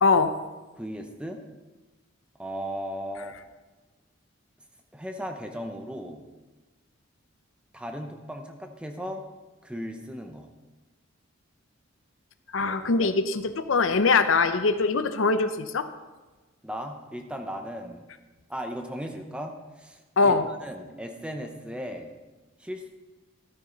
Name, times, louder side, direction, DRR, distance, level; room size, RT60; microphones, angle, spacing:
voice 1, 0.0-0.3 12.5-15.9 20.2-20.4, left 4 dB, 70° left, 10 dB, 0.6 m, -22 dB
voice 2, 0.8-1.4 2.4-3.3 4.9-6.2 7.7-9.2 9.6-10.5 12.6-13.1 16.6-18.0 18.5-22.2 22.6-22.9, equal, 5° right, 4 dB, 0.8 m, -37 dB
13.0 x 9.4 x 3.9 m, 1.2 s
head